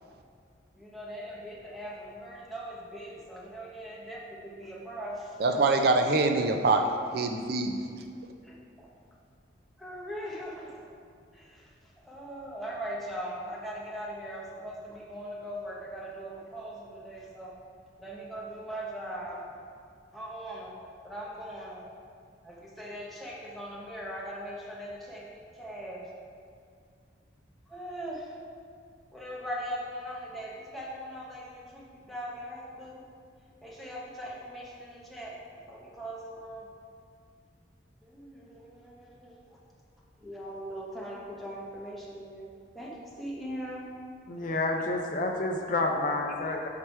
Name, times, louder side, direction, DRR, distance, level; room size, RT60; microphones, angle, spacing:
voice 1, 0.7-5.4 8.4-8.9 9.8-10.8 11.3-17.6 18.0-19.6 20.1-20.8 21.0-21.8 22.4-26.1 27.7-28.4 29.1-33.0 33.6-36.7 38.0-39.6 40.2-42.4 42.7-43.9 44.7-44.8, equal, ahead, -5 dB, 0.9 m, -40 dB
voice 2, 5.4-6.8 7.1-7.8, right 3 dB, 55° right, 5 dB, 0.4 m, -24 dB
voice 3, 44.3-46.7, left 2 dB, 45° left, 2 dB, 0.5 m, -29 dB
5.7 x 4.7 x 4.5 m, 2.2 s
head